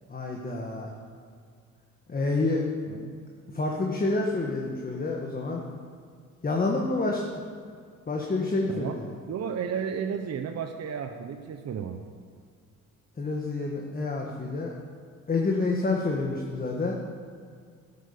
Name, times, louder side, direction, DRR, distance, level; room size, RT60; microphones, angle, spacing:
voice 1, 0.1-0.9 2.1-2.6 3.5-5.6 6.4-7.2 8.1-9.0 13.2-14.7 15.3-16.9, left 3 dB, 30° left, 0 dB, 1.7 m, -28 dB
voice 2, 2.9-3.2 8.7-9.0 9.3-12.0, right 7 dB, 60° right, 5 dB, 1.0 m, -33 dB
13.0 x 11.0 x 6.9 m, 2.1 s
cardioid pair, 90°, 30 cm